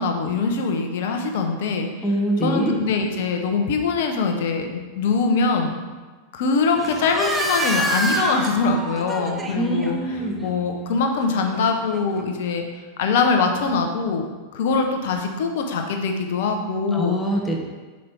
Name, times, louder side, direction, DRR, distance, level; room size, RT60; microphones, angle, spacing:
voice 1, 0.0-1.9 2.4-5.8 6.3-10.0 10.4-12.6 13.0-14.3 14.5-17.2, left 4 dB, 55° left, 4 dB, 0.9 m, -22 dB
voice 2, 2.0-2.7 9.5-10.4 16.9-17.6, right 1 dB, 5° left, -1 dB, 1.0 m, -24 dB
sound 1, 6.8-12.2, right 1 dB, 15° right, 0.7 m, -29 dB
5.4 x 5.2 x 4.4 m, 1.4 s
figure-of-eight pair, 90°, 0 cm